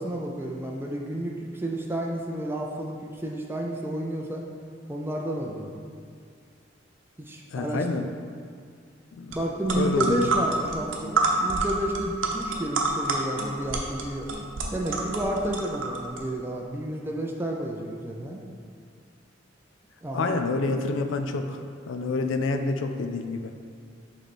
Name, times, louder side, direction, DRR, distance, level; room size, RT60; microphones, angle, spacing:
voice 1, 0.0-4.4 4.9-5.8 7.2-8.1 9.3-14.3 14.7-18.4 20.0-20.4, right 1 dB, 10° right, -1 dB, 0.4 m, -31 dB
voice 2, 7.5-8.0 9.2-9.3 9.7-10.3 20.1-21.6 21.9-23.5, left 3 dB, 85° left, 6 dB, 0.4 m, -27 dB
sound 1, 9.3-9.4 9.6-16.2, right 3 dB, 90° right, 0.8 m, -28 dB
7.8 x 3.2 x 4.2 m, 2.2 s
head